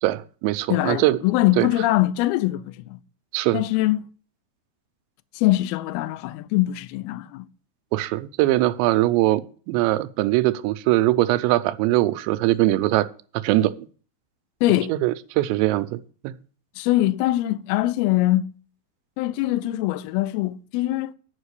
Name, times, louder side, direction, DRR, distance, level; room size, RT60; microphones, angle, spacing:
voice 1, 0.0-1.2 1.6-1.7 3.3-3.6 7.9-9.4 9.7-13.1 13.4-13.9 14.9-16.3, right 16 dB, 85° right, 2.9 m, -21 dB
voice 2, 0.7-3.0 3.5-4.1 5.4-7.5 14.6-14.9 16.8-18.5 19.2-21.1, left 16 dB, 85° left, 2.2 m, -22 dB
10.5 x 5.4 x 8.2 m
omnidirectional pair, 5.0 m